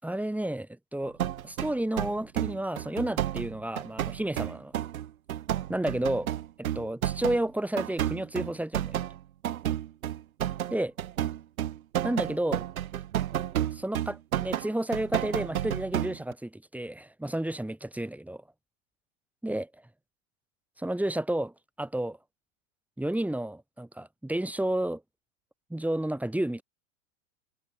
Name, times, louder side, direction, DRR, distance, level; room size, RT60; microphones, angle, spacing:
voice 1, 0.0-1.2 1.4-4.7 5.7-6.3 6.6-9.0 10.7-10.9 12.0-12.6 13.7-18.4 19.4-19.7 20.8-22.2 23.0-25.0 25.7-26.6, right 1 dB, 5° right, 4.2 m, -31 dB
sound 1, 1.2-7.4 7.8-16.3, right 11 dB, 85° right, 2.5 m, -31 dB
hypercardioid pair, 105°, 41 cm